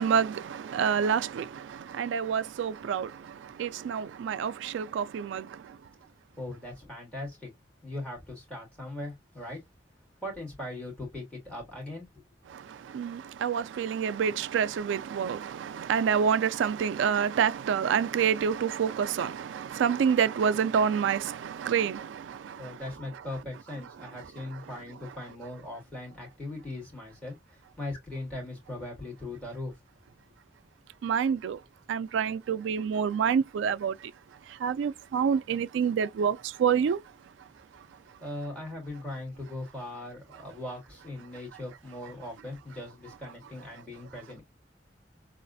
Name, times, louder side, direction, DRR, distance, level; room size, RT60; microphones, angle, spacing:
voice 1, 0.0-5.8 12.5-22.8 24.0-24.1 31.0-31.6 31.9-34.1 34.5-37.0 37.7-37.9, right 7 dB, 85° right, 0.3 m, -28 dB
voice 2, 6.4-7.5 7.8-9.6 10.2-12.2 22.6-29.8 38.2-44.4, left 1 dB, 5° left, 2.8 m, -39 dB
4.0 x 2.5 x 2.5 m
head